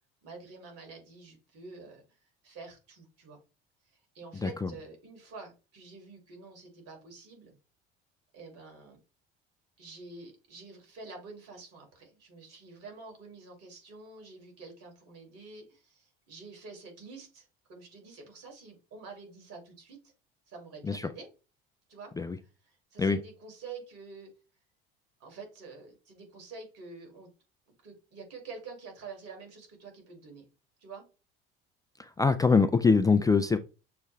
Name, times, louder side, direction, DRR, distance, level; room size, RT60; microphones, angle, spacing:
voice 1, 0.2-2.0 2.4-3.4 3.8-7.6 8.3-9.0 9.8-20.0 20.5-21.3 21.9-22.1 22.4-24.3 25.2-27.3 27.8-30.5 30.8-31.0, right 4 dB, 55° right, 2.4 m, -48 dB
voice 2, 32.0-33.6, left 4 dB, 10° left, 0.3 m, -24 dB
6.6 x 2.3 x 3.2 m
hypercardioid pair, 70°, 29 cm